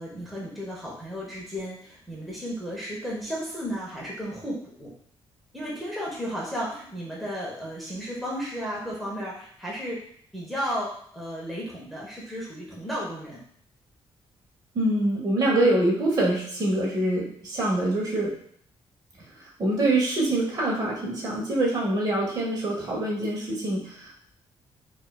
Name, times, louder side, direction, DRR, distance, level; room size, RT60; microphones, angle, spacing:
voice 1, 0.0-4.9 5.5-10.0 10.3-13.4, equal, ahead, -5 dB, 0.7 m, -34 dB
voice 2, 14.7-18.3 19.4-24.2, right 1 dB, 40° right, -3 dB, 0.8 m, -25 dB
4.3 x 2.4 x 2.2 m, 0.64 s
wide cardioid pair, 160°, 10 cm